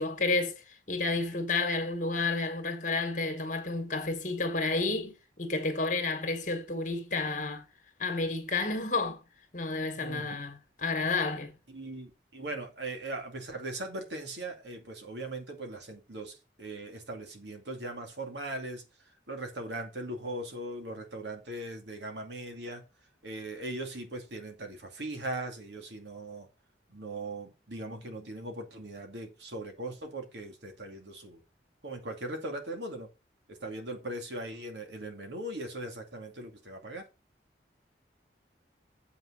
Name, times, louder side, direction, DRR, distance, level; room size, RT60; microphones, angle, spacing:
voice 1, 0.0-7.6 8.0-9.2 9.5-11.5, left 3 dB, 45° left, 1.9 m, -31 dB
voice 2, 10.0-10.4 11.7-22.8 23.2-26.5 26.9-31.4 31.8-33.1 33.5-37.1, right 1 dB, 80° right, 2.4 m, -39 dB
7.7 x 6.2 x 5.7 m
head